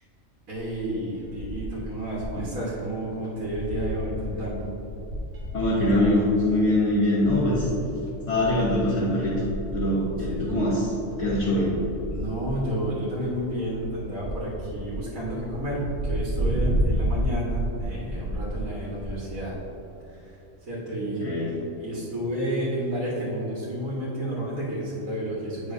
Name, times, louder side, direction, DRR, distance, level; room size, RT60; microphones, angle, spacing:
voice 1, 0.5-4.7 10.3-10.5 12.1-19.6 20.1-20.3 20.6-21.3 21.8-25.7, right 1 dB, 90° right, -7 dB, 2.0 m, -31 dB
sound 1, 0.6-2.5 2.8-2.9 3.2-19.5, right 1 dB, 70° right, 1.8 m, -32 dB
voice 2, 5.5-7.7 8.3-9.4 9.7-10.9 11.2-11.8 21.0-21.5, left 1 dB, 60° left, -9 dB, 1.6 m, -23 dB
9.1 x 6.2 x 2.7 m, 2.9 s
omnidirectional pair, 1.4 m